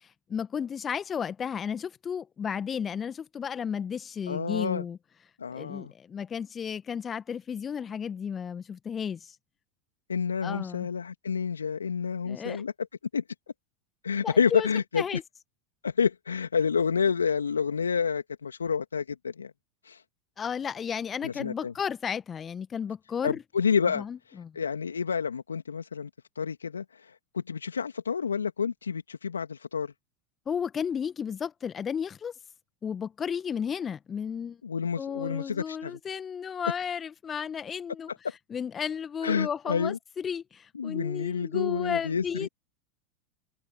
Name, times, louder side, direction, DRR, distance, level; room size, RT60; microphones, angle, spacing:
voice 1, 0.3-5.0 5.5-9.3 10.4-10.9 12.3-12.6 14.2-14.7 15.0-15.2 20.4-23.4 24.0-24.5 30.5-32.3 32.8-34.6 35.0-38.1 38.5-42.5, left 7 dB, 25° left, 1.6 m, -33 dB
voice 2, 4.3-4.8 5.4-5.9 10.1-12.7 13.1-13.2 14.0-15.0 15.8-19.5 19.8-20.0 21.2-21.7 23.2-24.1 24.6-26.1 26.4-29.9 34.6-36.0 39.2-40.0 40.7-42.5, left 6 dB, 80° left, 2.0 m, -29 dB
figure-of-eight pair, 85°, 0 cm